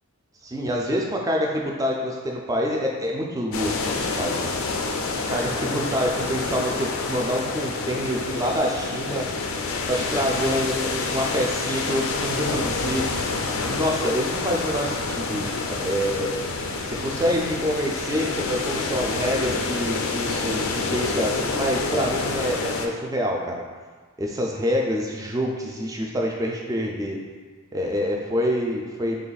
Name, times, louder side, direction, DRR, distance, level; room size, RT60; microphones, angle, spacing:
voice 1, 0.4-4.5 5.1-9.3 9.9-13.1 13.6-16.3 16.8-23.6 24.2-27.2 27.7-29.2, equal, 15° right, -1 dB, 0.3 m, -26 dB
sound 1, 3.5-22.9, left 3 dB, 70° left, 0.3 m, -28 dB
3.4 x 2.3 x 3.9 m, 1.5 s
head